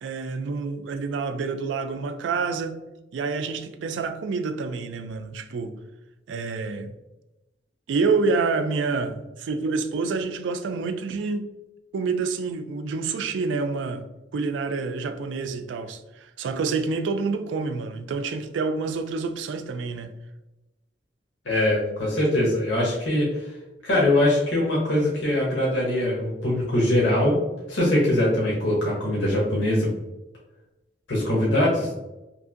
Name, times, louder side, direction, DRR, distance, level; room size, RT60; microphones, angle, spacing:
voice 1, 0.0-2.8 3.1-5.7 6.3-7.0 7.9-11.4 11.9-14.0 14.3-20.1, right 4 dB, 85° right, 0.3 m, -27 dB
voice 2, 21.5-23.4 23.8-27.4 27.7-29.9 31.1-31.9, left 1 dB, 80° left, 0.8 m, -22 dB
2.9 x 2.6 x 2.4 m
head